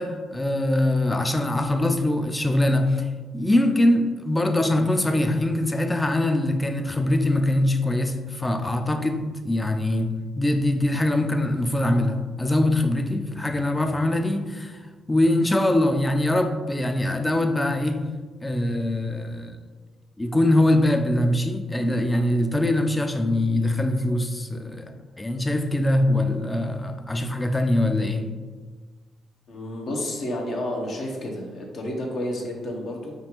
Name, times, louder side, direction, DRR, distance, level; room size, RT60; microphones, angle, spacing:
voice 1, 0.0-14.8 15.1-18.1 18.4-19.6 20.2-28.4, left 1 dB, 15° left, 0.4 m, -23 dB
voice 2, 29.5-33.1, left 1 dB, 60° left, 0.8 m, -30 dB
5.1 x 2.4 x 3.0 m
cardioid pair, 90°, 0 cm